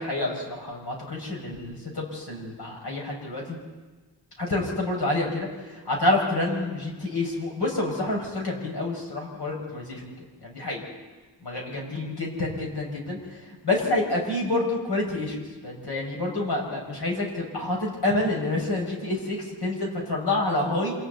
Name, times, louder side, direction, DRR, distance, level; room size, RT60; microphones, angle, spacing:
voice 1, 0.0-3.6 4.4-10.1 10.4-10.8 11.4-20.9, left 2 dB, 65° left, -1 dB, 6.4 m, -28 dB
27.5 x 27.5 x 4.2 m, 1.3 s
wide cardioid pair, 155°, 43 cm